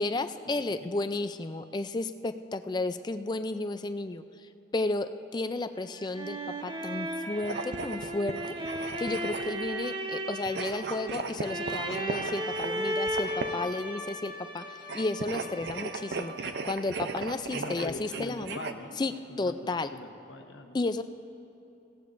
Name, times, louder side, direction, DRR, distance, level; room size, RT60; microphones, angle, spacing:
voice 1, 0.0-4.2 4.7-8.6 9.0-16.3 16.6-18.6 19.0-19.9 20.7-21.0, left 2 dB, 25° left, 10 dB, 0.3 m, -33 dB
sound 1, 5.8-16.6, right 1 dB, 25° right, 0.8 m, -36 dB
sound 2, 7.4-9.7 10.4-13.7 14.8-18.7, right 4 dB, 65° right, 0.5 m, -37 dB
voice 2, 17.5-19.0 19.3-19.5 19.9-20.8, left 1 dB, 85° left, 5 dB, 1.0 m, -42 dB
18.5 x 16.0 x 2.5 m, 2.8 s
head